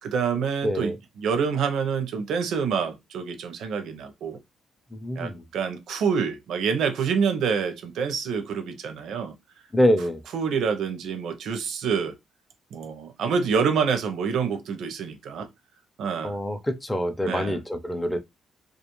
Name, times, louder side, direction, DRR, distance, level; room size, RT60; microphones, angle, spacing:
voice 1, 0.0-4.4 5.2-9.3 10.3-12.1 12.7-15.5 16.0-16.4 17.2-17.6, right 6 dB, 75° right, 0.5 m, -27 dB
voice 2, 0.6-1.0 5.0-5.4 9.7-10.2 16.2-18.2, equal, 10° left, 0.4 m, -25 dB
2.4 x 2.3 x 2.9 m
cardioid pair, 90°, 0 cm